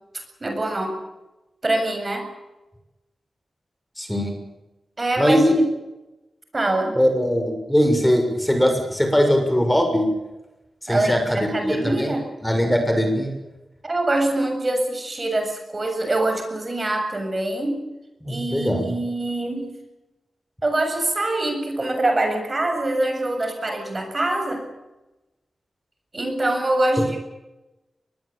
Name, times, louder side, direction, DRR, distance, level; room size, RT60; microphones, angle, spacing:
voice 1, 0.4-1.0 1.6-2.3 5.0-5.4 6.5-7.0 10.9-12.3 13.8-17.8 18.3-19.7 20.6-24.6 26.1-27.3, right 2 dB, 35° right, 5 dB, 7.3 m, -24 dB
voice 2, 4.0-4.3 5.2-5.6 6.9-10.1 10.8-12.1 12.4-13.4 18.2-19.0, equal, 5° left, 5 dB, 6.8 m, -20 dB
23.5 x 21.0 x 8.7 m, 1.0 s
cardioid pair, 70°, 0 cm